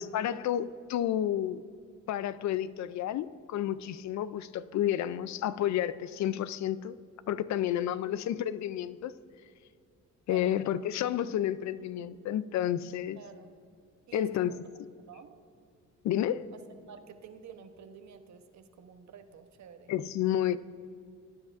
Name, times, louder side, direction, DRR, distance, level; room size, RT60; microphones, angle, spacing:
voice 1, 0.0-1.7 2.1-7.0 7.3-9.1 10.3-13.2 14.1-14.5 16.0-16.5 19.9-20.6, left 11 dB, 65° left, 15 dB, 0.5 m, -30 dB
voice 2, 13.2-13.5 14.1-14.6 15.1-15.4 16.5-16.6 16.9-19.9, right 8 dB, 65° right, 8 dB, 0.9 m, -48 dB
18.5 x 9.9 x 2.5 m, 2.4 s
cardioid pair, 90°, 30 cm